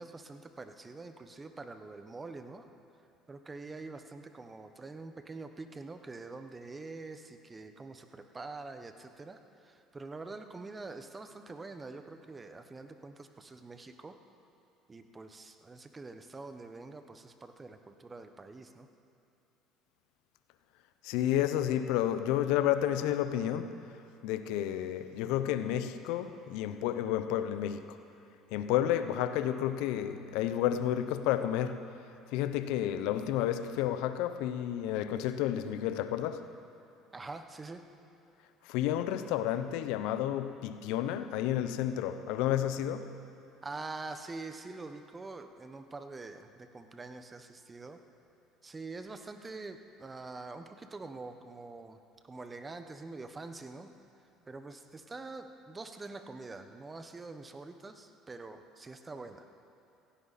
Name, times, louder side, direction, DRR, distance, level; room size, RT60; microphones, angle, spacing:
voice 1, 0.0-2.7 3.3-14.2 14.9-18.9 37.1-37.8 43.6-48.0 48.6-53.9 54.5-59.5, right 3 dB, 25° right, 1.1 m, -45 dB
voice 2, 21.0-23.7 24.2-28.0 28.5-31.8 32.3-36.5 38.7-43.1, left 11 dB, 75° left, 0.7 m, -31 dB
16.5 x 15.5 x 4.2 m
supercardioid pair, 75°, 0 cm